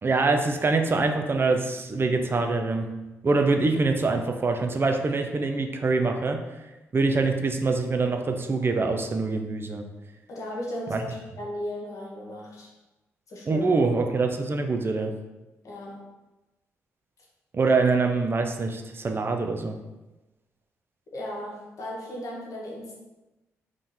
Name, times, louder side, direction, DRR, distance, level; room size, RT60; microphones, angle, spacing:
voice 1, 0.0-2.9 3.2-6.4 6.9-9.9 10.9-11.0 13.5-15.1 17.5-19.8, right 3 dB, 40° right, 5 dB, 0.6 m, -24 dB
voice 2, 10.3-12.7 13.3-13.7 15.6-16.1 21.1-22.9, left 1 dB, 65° left, -2 dB, 1.4 m, -36 dB
3.7 x 3.2 x 4.2 m, 1.1 s
supercardioid pair, 55°, 6 cm